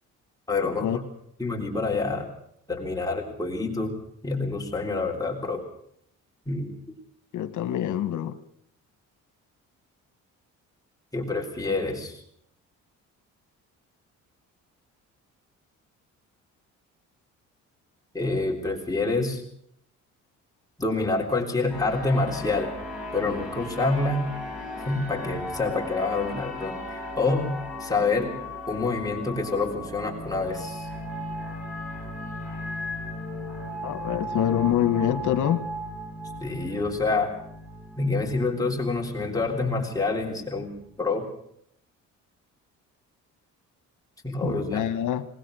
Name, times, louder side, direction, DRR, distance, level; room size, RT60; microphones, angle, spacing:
voice 1, 0.5-1.0 1.4-2.3 2.7-3.9 4.2-5.6 6.5-7.0 11.1-12.2 18.1-19.4 20.8-22.7 23.1-24.3 24.8-27.5 27.8-28.3 28.7-30.9 36.4-37.4 38.0-41.3 44.2-44.8, left 3 dB, 10° left, 0 dB, 3.6 m, -27 dB
voice 2, 7.3-8.4 33.8-35.6 44.4-45.3, left 10 dB, 80° left, 11 dB, 1.6 m, -25 dB
sound 1, 21.7-41.1, left 1 dB, 5° right, 7.5 m, -37 dB
20.5 x 20.0 x 6.4 m, 0.69 s
cardioid pair, 135°, 30 cm